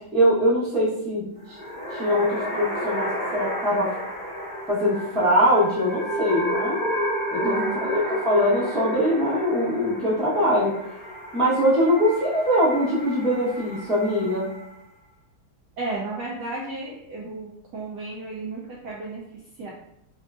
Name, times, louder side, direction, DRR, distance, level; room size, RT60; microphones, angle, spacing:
voice 1, 0.1-1.6 1.9-3.9 4.7-6.8 7.3-8.0 8.2-10.7 11.3-14.5, equal, ahead, -9 dB, 0.4 m, -22 dB
sound 1, 1.4-14.8, equal, 70° left, 0.4 m, -31 dB
voice 2, 7.4-7.9 15.8-19.2 19.6-19.7, right 3 dB, 75° right, -4 dB, 0.9 m, -33 dB
3.5 x 2.3 x 2.4 m, 0.79 s
omnidirectional pair, 2.3 m